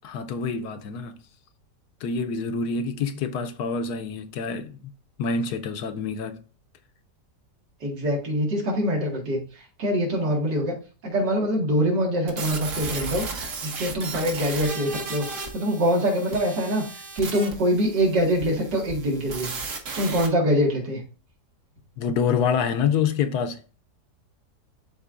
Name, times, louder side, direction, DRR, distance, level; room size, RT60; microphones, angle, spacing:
voice 1, 0.0-1.2 2.0-4.8 5.2-6.4 22.0-23.6, left 6 dB, 75° left, 1.2 m, -26 dB
voice 2, 7.8-10.7 11.0-15.3 15.5-19.5 19.9-21.0, equal, 85° right, 2.5 m, -24 dB
sound 1, 12.3-20.3, right 4 dB, 50° right, 1.3 m, -35 dB
11.5 x 3.9 x 2.5 m
omnidirectional pair, 1.8 m